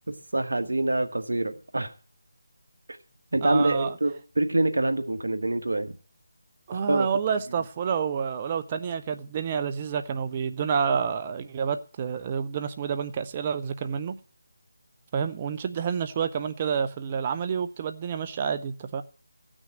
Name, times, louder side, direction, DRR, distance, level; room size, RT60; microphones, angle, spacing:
voice 1, 0.3-1.9 3.3-5.9 6.7-7.1, right 2 dB, 80° right, 1.5 m, -25 dB
voice 2, 3.4-3.9 6.7-14.1 15.1-19.0, right 6 dB, 30° right, 0.7 m, -29 dB
15.5 x 6.3 x 7.5 m
figure-of-eight pair, 160°, 0 cm